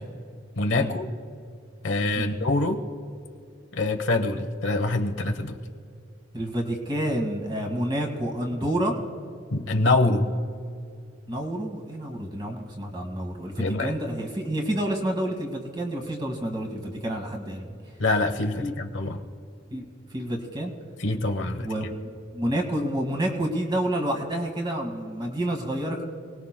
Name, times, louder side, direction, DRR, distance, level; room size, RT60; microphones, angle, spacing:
voice 1, 0.6-1.1 1.8-2.8 3.7-5.6 9.5-10.3 13.6-13.9 18.0-19.2 21.0-21.7, left 2 dB, 75° left, 6 dB, 1.0 m, -25 dB
voice 2, 6.3-9.0 11.3-17.8 18.6-18.7 19.7-19.8 20.1-20.7 21.6-21.8 22.3-26.0, right 1 dB, 25° right, 2 dB, 1.8 m, -29 dB
27.5 x 19.0 x 2.2 m, 2.4 s
head